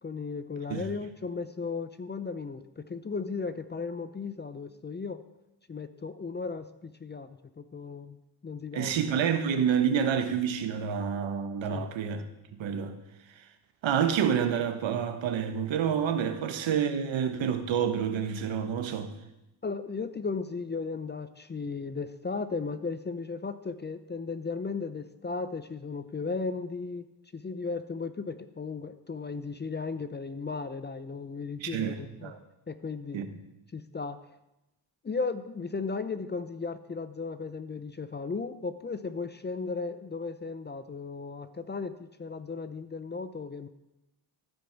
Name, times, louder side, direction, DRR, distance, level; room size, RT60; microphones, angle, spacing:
voice 1, 0.0-5.2 5.7-9.0 11.7-11.9 19.6-32.3 32.7-33.2 33.7-34.2 35.0-43.7, left 4 dB, 25° left, 0.5 m, -36 dB
voice 2, 8.7-12.3 12.6-13.0 13.4-13.5 13.8-19.1 31.6-31.9 32.2-32.4 33.1-33.3, right 8 dB, 70° right, 1.2 m, -28 dB
15.5 x 5.2 x 4.6 m
cardioid pair, 80°, 47 cm